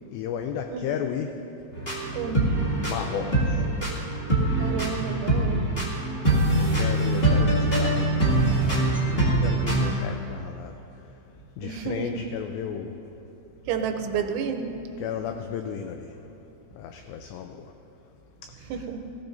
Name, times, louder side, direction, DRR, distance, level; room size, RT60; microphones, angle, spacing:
voice 1, 0.1-1.3 2.8-3.6 6.5-10.8 11.6-13.0 15.0-16.1 16.7-17.7 18.4-18.5 18.8-18.9, left 8 dB, 85° left, 5 dB, 2.5 m, -34 dB
sound 1, 1.7-9.9, right 1 dB, 35° left, 0.8 m, -23 dB
voice 2, 2.1-2.7 4.6-5.8 11.6-12.3 13.7-14.8 18.7-19.1, right 7 dB, 85° right, 6 dB, 3.1 m, -31 dB
20.0 x 15.5 x 2.7 m, 2.9 s
omnidirectional pair, 5.5 m